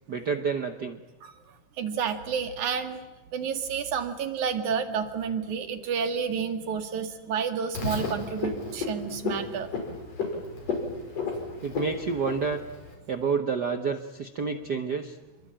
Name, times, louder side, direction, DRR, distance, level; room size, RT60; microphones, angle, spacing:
voice 1, 0.1-1.0 11.6-12.6 13.1-15.2, right 5 dB, 55° right, 7 dB, 1.1 m, -29 dB
voice 2, 1.8-3.1 3.3-9.7, right 6 dB, 75° right, 8 dB, 3.4 m, -30 dB
Frog, 7.7-12.9, left 3 dB, 55° left, 6.4 m, -33 dB
28.0 x 22.5 x 8.9 m, 1.1 s
omnidirectional pair, 3.5 m